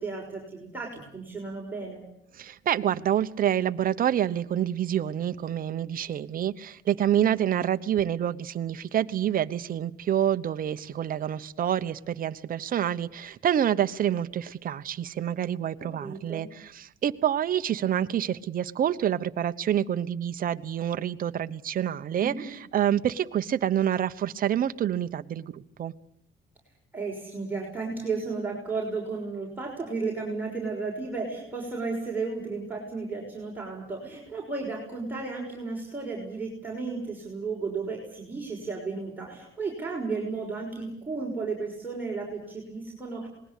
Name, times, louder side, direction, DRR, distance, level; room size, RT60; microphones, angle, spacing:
voice 1, 0.0-2.0 15.8-16.5 22.2-22.4 26.9-43.3, right 4 dB, 10° right, -3 dB, 6.0 m, -34 dB
voice 2, 2.3-25.9, right 10 dB, 45° right, 11 dB, 1.0 m, -27 dB
27.0 x 20.5 x 8.4 m, 0.74 s
cardioid pair, 145°, 20 cm